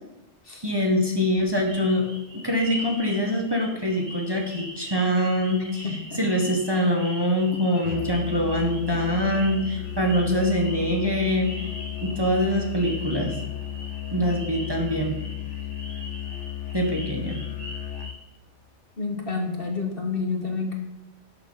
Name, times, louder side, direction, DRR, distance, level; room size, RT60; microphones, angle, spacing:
voice 1, 0.6-2.1 2.4-5.8 6.2-11.5 12.0-13.3 14.1-15.2 16.7-17.4, equal, 20° right, 0 dB, 1.4 m, -24 dB
sound 1, 1.7-18.1, equal, 50° right, 4.1 m, -41 dB
voice 2, 5.8-6.2 19.0-20.8, left 4 dB, 50° left, 3 dB, 1.7 m, -29 dB
Musical instrument, 7.8-18.2, left 10 dB, 70° left, 1.0 m, -34 dB
12.0 x 6.5 x 5.7 m, 0.94 s
omnidirectional pair, 1.3 m